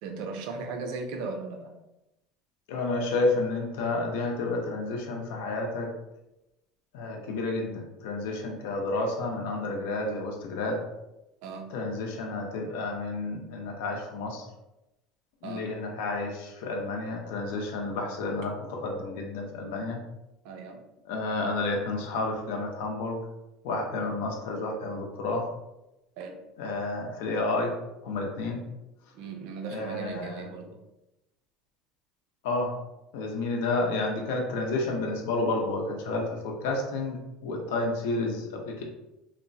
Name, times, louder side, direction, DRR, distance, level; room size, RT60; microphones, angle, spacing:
voice 1, 0.0-1.8 11.4-11.7 15.4-15.7 20.4-20.8 24.0-24.1 26.2-26.4 29.1-30.8, right 4 dB, 70° right, 4 dB, 0.5 m, -37 dB
voice 2, 2.7-5.9 6.9-10.8 11.7-14.5 15.4-20.0 21.1-23.2 23.6-25.5 26.6-27.7 28.0-28.6 29.7-30.5 32.4-32.7 33.1-38.8, left 2 dB, 85° left, 2 dB, 0.6 m, -30 dB
2.9 x 2.0 x 2.6 m, 0.94 s
cardioid pair, 140°, 0 cm